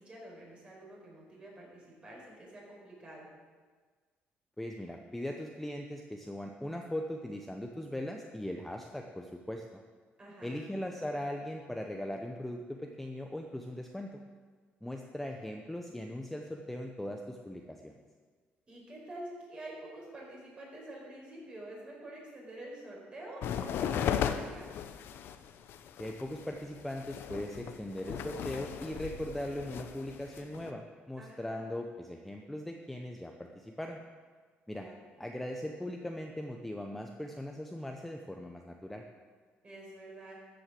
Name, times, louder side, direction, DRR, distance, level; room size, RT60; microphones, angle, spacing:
voice 1, 0.0-3.3 10.2-10.6 18.7-24.7 31.2-31.7 34.7-35.0 39.6-40.4, right 1 dB, 25° right, -3 dB, 5.2 m, -47 dB
voice 2, 4.6-9.8 10.4-14.2 14.8-17.9 26.0-34.0 34.7-34.9 35.2-39.0, left 1 dB, 5° left, 2 dB, 0.8 m, -39 dB
sound 1, 23.4-30.7, left 8 dB, 65° left, 0.8 m, -36 dB
13.5 x 7.9 x 7.6 m, 1.5 s
cardioid pair, 140°, 4 cm